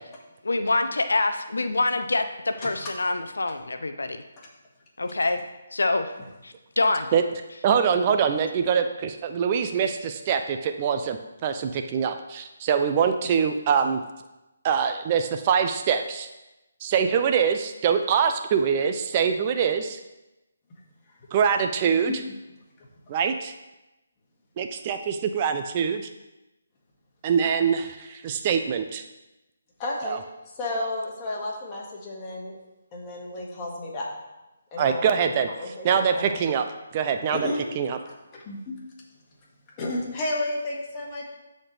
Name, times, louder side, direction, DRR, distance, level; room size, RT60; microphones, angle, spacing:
voice 1, 0.4-4.2 5.0-5.4 5.7-6.1 6.4-7.1, left 2 dB, 80° left, 8 dB, 0.6 m, -25 dB
voice 2, 7.6-14.0 14.6-16.3 16.8-20.0 21.3-22.2 23.1-23.5 24.6-26.0 27.2-29.0 30.0-30.2 34.8-35.5 35.8-36.7 36.9-37.5 37.8-38.0, right 7 dB, 30° right, 7 dB, 0.5 m, -24 dB
voice 3, 29.8-30.2 30.6-32.6 32.9-34.1 34.7-36.4 37.3-37.6 38.1-38.8 39.8-41.3, left 2 dB, 25° left, -4 dB, 1.9 m, -32 dB
13.0 x 4.3 x 3.3 m, 1.0 s
figure-of-eight pair, 150°, 0 cm